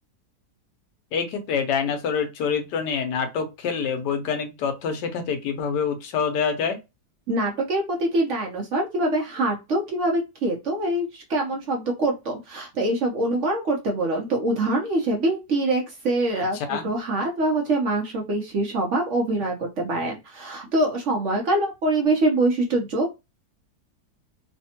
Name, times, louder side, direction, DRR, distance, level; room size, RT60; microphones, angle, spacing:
voice 1, 1.1-6.8 16.5-16.9, left 6 dB, 85° left, 1.3 m, -26 dB
voice 2, 7.3-23.2, right 2 dB, 60° right, 0.8 m, -24 dB
3.3 x 2.1 x 2.7 m
omnidirectional pair, 1.8 m